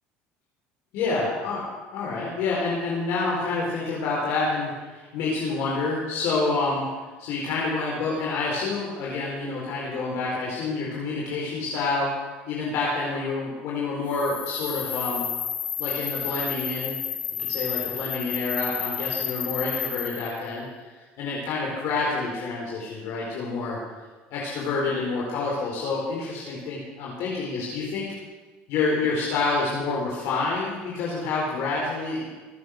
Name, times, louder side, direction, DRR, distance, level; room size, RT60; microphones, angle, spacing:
voice 1, 0.9-1.6 1.9-6.9 7.2-12.1 12.5-15.2 15.8-17.0 17.5-20.7 21.2-23.8 24.3-28.0 28.7-32.3, left 3 dB, 70° left, -4 dB, 4.5 m, -28 dB
sound 1, 14.1-20.4, left 9 dB, 40° left, 1.5 m, -31 dB
23.5 x 8.0 x 6.6 m, 1.3 s
supercardioid pair, 115°, 4 cm